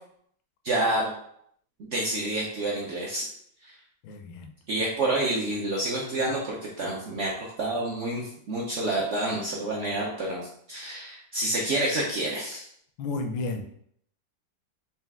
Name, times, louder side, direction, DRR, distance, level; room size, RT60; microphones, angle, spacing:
voice 1, 0.6-1.1 1.8-3.3 3.6-3.8 4.7-12.6, right 1 dB, 75° right, -4 dB, 0.6 m, -28 dB
voice 2, 4.0-4.5 13.0-13.6, left 3 dB, 85° left, 6 dB, 1.3 m, -32 dB
4.3 x 2.4 x 3.5 m, 0.67 s
omnidirectional pair, 2.1 m